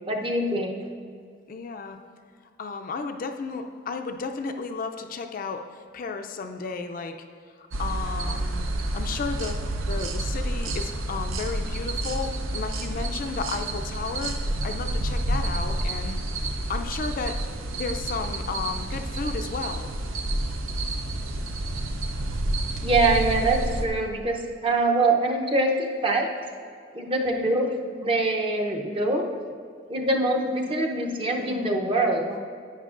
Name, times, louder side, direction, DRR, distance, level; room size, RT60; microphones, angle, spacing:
voice 1, 0.1-0.9 22.8-26.3 26.9-29.4 29.9-32.4, right 2 dB, 25° right, 1 dB, 0.7 m, -24 dB
voice 2, 1.5-2.0 2.6-7.2 7.6-8.7 8.9-9.6 9.9-16.2 16.7-17.4 17.7-19.9, left 4 dB, 45° left, 5 dB, 0.4 m, -33 dB
sound 1, 7.7-23.8, right 1 dB, 85° right, 0.7 m, -29 dB
11.0 x 9.0 x 2.5 m, 2.1 s
head